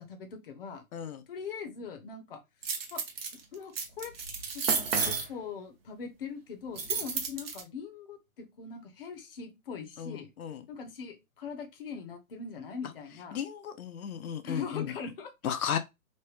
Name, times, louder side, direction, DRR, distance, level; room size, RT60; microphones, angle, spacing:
voice 1, 0.0-0.8 1.3-2.4 2.9-3.0 3.5-4.1 4.5-10.3 10.7-13.4 14.4-15.3, left 6 dB, 40° left, 0.6 m, -41 dB
voice 2, 0.9-1.2 10.0-10.6 13.3-14.9 15.4-15.8, left 8 dB, 80° left, 0.6 m, -34 dB
sound 1, 2.6-3.3 3.7-5.2 6.8-7.6, right 5 dB, 45° right, 0.7 m, -31 dB
3.1 x 2.1 x 3.2 m
hypercardioid pair, 160°, 43 cm